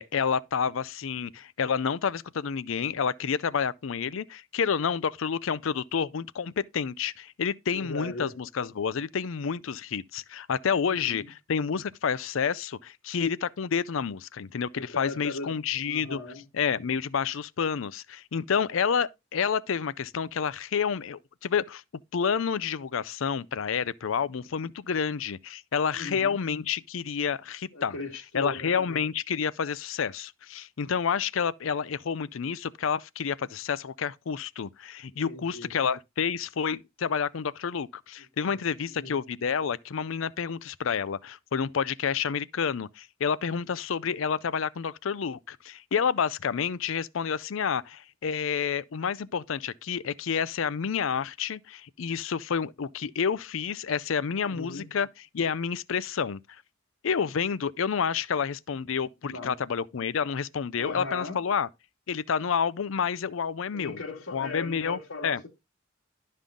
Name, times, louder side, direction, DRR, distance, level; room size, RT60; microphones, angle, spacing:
voice 1, 0.0-11.2 11.5-16.2 16.5-21.8 22.1-27.9 28.3-55.1 55.3-56.4 57.0-61.7 62.1-64.0 64.3-65.4, left 6 dB, 70° left, 0.5 m, -29 dB
voice 2, 7.7-8.3 10.9-11.3 14.7-15.6 15.8-16.4 26.0-26.4 27.7-29.0 35.2-35.7 38.4-38.6 38.9-39.2 54.4-54.9 59.2-59.6 60.8-61.4 63.7-65.5, left 2 dB, 90° left, 2.2 m, -38 dB
11.5 x 5.4 x 3.8 m
head